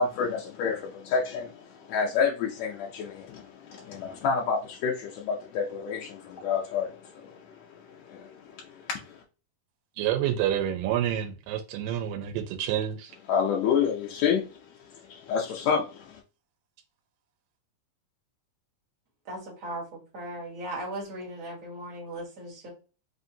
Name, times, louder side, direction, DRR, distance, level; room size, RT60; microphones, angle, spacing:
voice 1, 0.0-9.2 13.3-16.2, left 6 dB, 85° left, 1.5 m, -29 dB
voice 2, 10.0-13.1, right 10 dB, 90° right, 2.3 m, -28 dB
voice 3, 19.2-22.7, right 1 dB, 55° right, 0.9 m, -38 dB
5.2 x 2.5 x 2.7 m
omnidirectional pair, 3.9 m